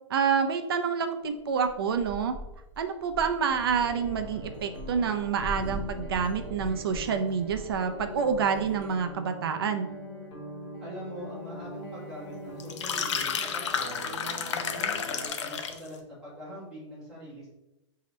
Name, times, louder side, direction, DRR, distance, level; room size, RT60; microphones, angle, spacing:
voice 1, 0.1-2.3 2.8-9.9, right 6 dB, 50° right, 7 dB, 0.4 m, -28 dB
sound 1, 1.6-9.1, equal, 20° left, 0.4 m, -42 dB
sound 2, 3.6-15.3, equal, 50° left, 1.3 m, -42 dB
voice 2, 10.8-17.5, equal, 5° right, -11 dB, 1.4 m, -43 dB
sound 3, 12.6-15.9, left 7 dB, 70° left, 0.5 m, -31 dB
5.3 x 2.8 x 3.0 m, 0.95 s
hypercardioid pair, 180°, 16 cm